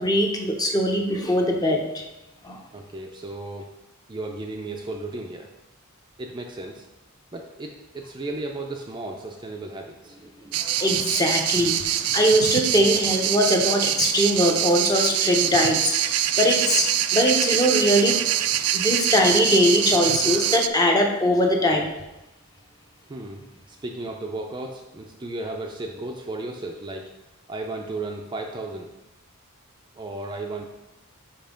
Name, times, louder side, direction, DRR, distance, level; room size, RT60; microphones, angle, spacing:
voice 1, 0.0-2.0 2.4-2.6 10.6-18.2 18.7-21.9, equal, 15° left, 2 dB, 0.7 m, -21 dB
voice 2, 2.7-3.7 4.1-5.5 6.2-6.9 7.3-10.6 23.1-27.1 27.5-28.9 30.0-30.7, right 2 dB, 20° right, 1 dB, 0.4 m, -34 dB
sound 1, 10.5-20.7, right 11 dB, 90° right, 0.4 m, -24 dB
5.5 x 5.1 x 5.1 m, 0.99 s
head